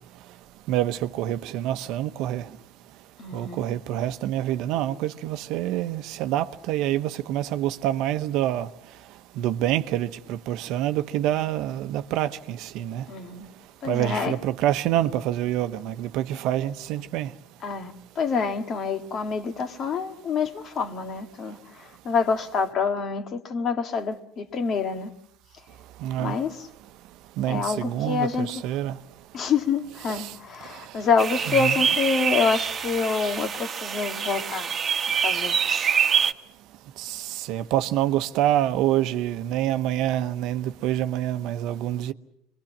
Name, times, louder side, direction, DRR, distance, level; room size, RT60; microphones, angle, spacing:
voice 1, 0.7-2.5 3.3-8.7 9.4-13.0 13.8-17.3 26.0-26.4 27.4-29.0 30.1-30.3 30.7-30.8 31.5-31.7 37.0-42.1, right 12 dB, 65° right, 0.9 m, -26 dB
voice 2, 3.2-3.6 13.1-13.5 13.8-14.3 17.6-25.1 26.2-26.6 27.5-28.5 29.3-34.7 35.1-35.6, left 5 dB, 45° left, 2.0 m, -27 dB
sound 1, 31.2-36.3, right 7 dB, 35° right, 1.3 m, -25 dB
25.5 x 22.0 x 7.4 m
supercardioid pair, 100°, 0 cm